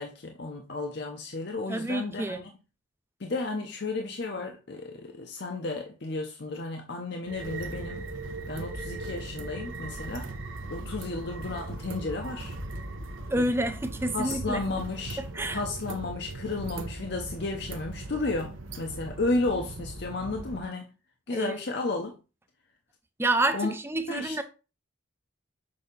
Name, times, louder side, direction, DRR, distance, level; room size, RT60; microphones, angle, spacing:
voice 1, 0.0-2.5 3.2-8.1 8.5-10.3 10.7-12.6 13.4-13.5 14.1-15.2 15.5-20.9 21.3-22.1 23.5-23.7 24.1-24.4, left 2 dB, 55° left, 0.7 m, -33 dB
voice 2, 1.7-2.4 13.3-14.6 15.2-15.6 21.3-21.5 23.2-24.4, right 1 dB, 10° right, 0.4 m, -28 dB
sound 1, 7.2-20.6, right 2 dB, 80° right, 0.9 m, -38 dB
6.8 x 2.8 x 5.2 m
head